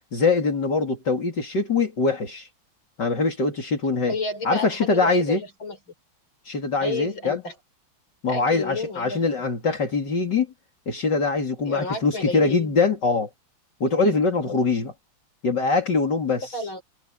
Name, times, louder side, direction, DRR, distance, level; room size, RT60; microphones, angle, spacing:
voice 1, 0.1-2.5 3.0-4.2 4.5-5.4 6.5-7.4 8.2-10.5 10.9-13.3 13.8-14.9 15.4-16.5, left 4 dB, 60° left, 3.6 m, -23 dB
voice 2, 4.1-5.8 6.8-7.5 8.3-9.3 11.6-12.7 14.0-14.2 16.5-16.8, left 3 dB, 90° left, 8.1 m, -31 dB
omnidirectional pair, 2.2 m